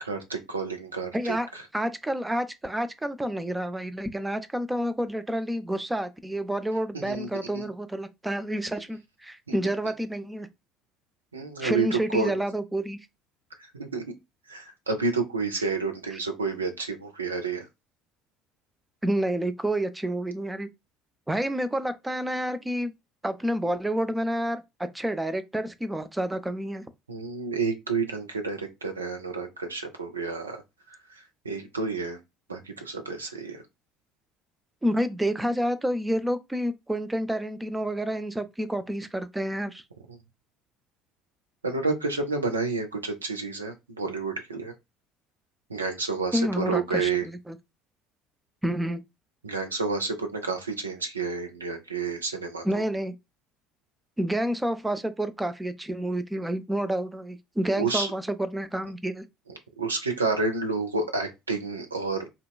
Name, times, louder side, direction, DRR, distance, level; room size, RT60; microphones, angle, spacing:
voice 1, 0.0-1.4 6.9-7.3 7.5-7.7 9.5-9.6 11.3-12.4 13.7-14.0 14.5-17.7 27.1-30.6 31.4-32.2 32.5-33.6 41.6-44.7 45.7-47.2 49.4-52.7 57.8-58.1 59.8-62.3, right 4 dB, 85° right, 0.5 m, -30 dB
voice 2, 1.1-1.5 1.7-10.5 11.6-13.0 19.0-20.7 21.3-22.9 23.2-26.8 34.8-39.8 46.3-47.6 48.6-49.0 52.6-53.1 54.2-59.2, right 1 dB, 10° right, 0.4 m, -29 dB
3.9 x 2.2 x 2.3 m
figure-of-eight pair, 60°, 0 cm